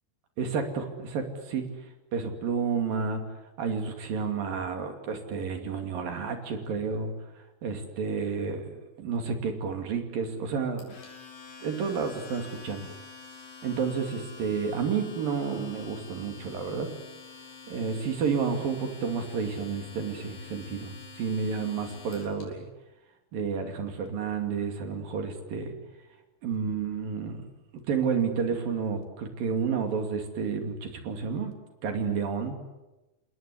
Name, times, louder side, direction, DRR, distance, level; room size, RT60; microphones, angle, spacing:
voice 1, 0.4-1.8 2.1-3.2 3.6-7.1 7.6-10.9 11.6-12.9 13.6-16.9 17.7-22.7 23.3-25.8 26.4-27.4 27.9-31.5 31.8-32.6, right 5 dB, 60° right, 5 dB, 4.2 m, -30 dB
Domestic sounds home sounds, 10.8-22.4, left 5 dB, 85° left, 7.5 m, -47 dB
29.0 x 19.0 x 9.9 m, 1.1 s
omnidirectional pair, 4.8 m